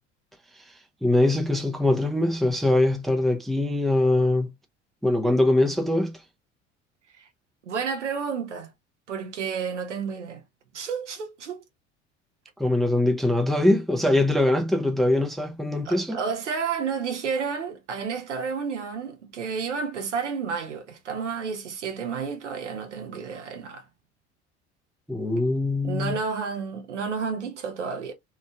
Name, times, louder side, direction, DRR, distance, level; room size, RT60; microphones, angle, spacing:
voice 1, 1.0-4.5 5.0-6.2 12.6-16.2 25.1-26.2, left 1 dB, ahead, 0.4 m, -22 dB
voice 2, 7.7-8.7 9.1-10.4 10.7-11.6 15.8-23.9 25.3-25.5 25.8-28.1, right 6 dB, 80° right, 0.7 m, -31 dB
2.9 x 2.5 x 2.2 m
figure-of-eight pair, 65°, 35 cm